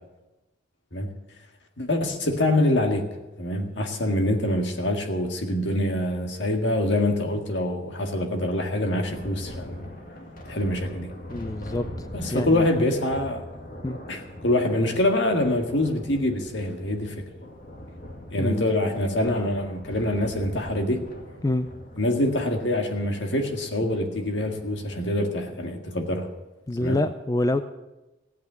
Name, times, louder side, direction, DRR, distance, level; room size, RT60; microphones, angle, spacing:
voice 1, 1.8-3.1 3.4-9.8 10.5-11.1 12.1-13.4 14.1-17.3 18.3-21.1 22.0-26.3 26.8-27.0, left 1 dB, 70° left, 4 dB, 1.9 m, -25 dB
Thunder, 8.8-25.0, left 1 dB, 50° left, 2.1 m, -41 dB
voice 2, 11.3-11.9 12.3-12.7 13.8-14.0 18.4-19.5 21.4-21.7 26.7-27.6, left 2 dB, 20° left, 10 dB, 0.4 m, -27 dB
16.0 x 8.5 x 8.1 m, 1.0 s
head